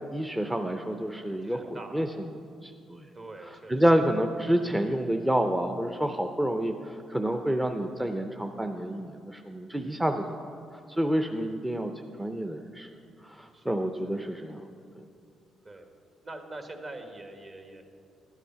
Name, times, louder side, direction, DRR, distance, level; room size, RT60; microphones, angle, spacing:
voice 1, 0.1-2.1 2.6-3.1 3.7-10.5 10.9-11.9 12.2-12.9 13.2-14.7 15.0-15.1, right 1 dB, 10° right, 5 dB, 0.5 m, -28 dB
voice 2, 1.4-2.1 3.1-3.8 13.5-14.1 15.6-15.9 16.2-17.8, right 2 dB, 40° right, 5 dB, 1.4 m, -44 dB
12.5 x 8.2 x 5.7 m, 2.6 s
cardioid pair, 90°, 0 cm